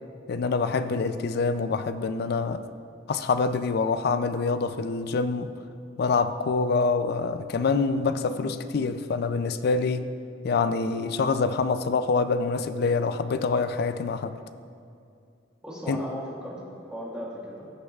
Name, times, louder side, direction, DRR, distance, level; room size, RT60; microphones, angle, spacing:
voice 1, 0.3-2.7 3.1-5.6 6.0-10.1 10.4-14.4 15.9-16.0, left 4 dB, 55° left, 11 dB, 0.4 m, -26 dB
voice 2, 15.6-17.7, equal, 5° right, -7 dB, 1.7 m, -37 dB
15.5 x 6.5 x 2.4 m, 2.4 s
head